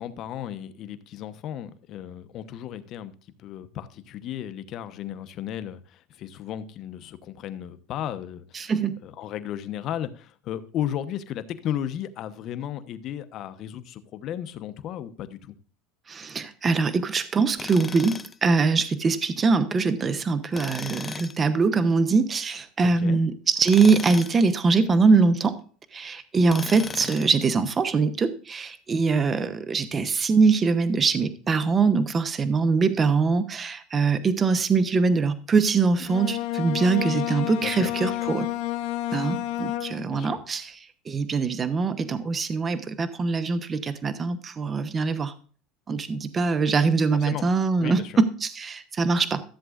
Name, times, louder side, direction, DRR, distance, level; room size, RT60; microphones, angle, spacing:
voice 1, 0.0-3.1 3.4-8.7 9.0-15.6 22.8-23.2 37.6-38.2 40.1-40.4 47.1-47.5 47.8-48.2, left 10 dB, 50° left, 1.0 m, -34 dB
voice 2, 8.5-8.9 16.1-25.5 25.9-38.5 39.1-40.8 41.1-45.3 45.9-49.4, right 4 dB, 25° right, 0.9 m, -23 dB
Tools, 17.6-18.4 20.5-21.4 23.6-24.4 26.5-27.4, left 5 dB, 20° left, 0.5 m, -36 dB
Bowed string instrument, 36.0-40.3, left 15 dB, 65° left, 1.3 m, -30 dB
14.0 x 7.6 x 2.5 m
supercardioid pair, 120°, 0 cm